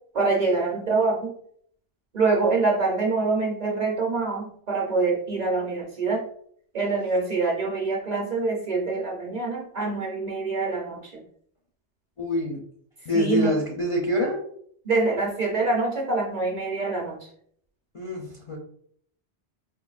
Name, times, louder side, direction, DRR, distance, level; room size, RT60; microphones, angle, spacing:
voice 1, 0.1-1.3 2.1-6.2 6.7-11.1 13.1-13.5 14.8-17.3, right 3 dB, 45° right, -1 dB, 0.7 m, -25 dB
voice 2, 12.2-12.6 13.0-14.4 17.9-18.6, equal, 40° left, -3 dB, 0.4 m, -25 dB
4.4 x 2.6 x 2.3 m, 0.64 s
omnidirectional pair, 1.2 m